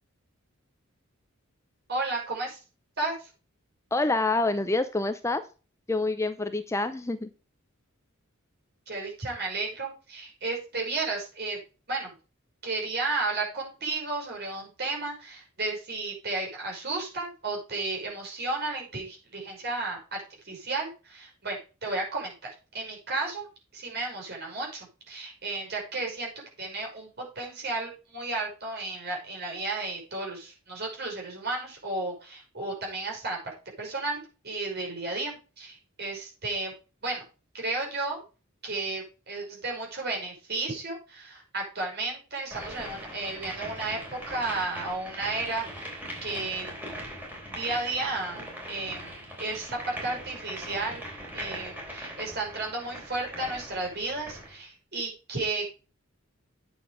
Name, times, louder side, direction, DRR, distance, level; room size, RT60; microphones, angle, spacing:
voice 1, 1.9-2.6 3.0-3.3 8.9-11.6 11.9-12.1 12.6-23.5 23.7-26.3 26.6-27.1 27.4-33.4 33.8-36.7 37.0-37.2 37.5-38.2 38.6-45.9 46.2-46.8 47.5-51.0 51.3-55.6, right 3 dB, 50° right, -1 dB, 5.6 m, -33 dB
voice 2, 3.9-5.4 5.9-7.3, left 2 dB, 15° left, 10 dB, 0.6 m, -27 dB
sound 1, 42.5-54.6, equal, 10° right, 3.4 m, -40 dB
8.9 x 7.0 x 5.1 m, 0.33 s
head